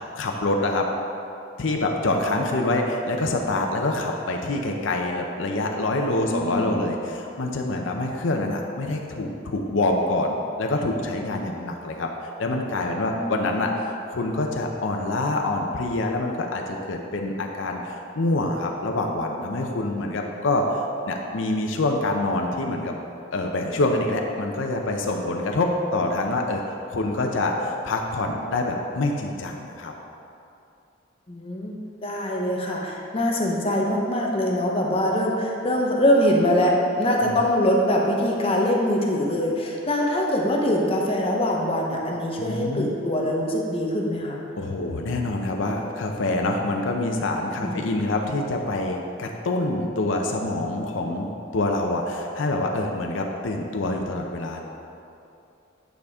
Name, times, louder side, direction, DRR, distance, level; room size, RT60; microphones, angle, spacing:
voice 1, 0.1-0.9 1.6-22.9 23.3-29.9 37.2-37.4 42.4-42.9 44.6-54.6, left 2 dB, 75° left, 2 dB, 0.6 m, -26 dB
voice 2, 6.3-6.9 13.2-13.3 31.3-44.4 47.6-47.8, left 1 dB, 30° left, -1 dB, 0.8 m, -23 dB
9.3 x 5.0 x 3.5 m, 2.7 s
head